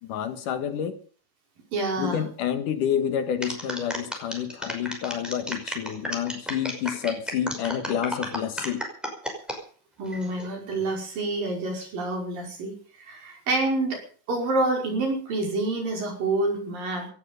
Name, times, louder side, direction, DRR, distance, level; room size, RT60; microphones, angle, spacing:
voice 1, 0.0-1.0 2.0-8.8, left 9 dB, 70° left, 3.0 m, -29 dB
voice 2, 1.7-2.2 10.0-14.0 14.3-17.1, right 2 dB, 80° right, 7.2 m, -27 dB
sound 1, 3.4-9.6 10.1-10.5, equal, ahead, 5.2 m, -33 dB
17.5 x 14.5 x 5.4 m
omnidirectional pair, 3.9 m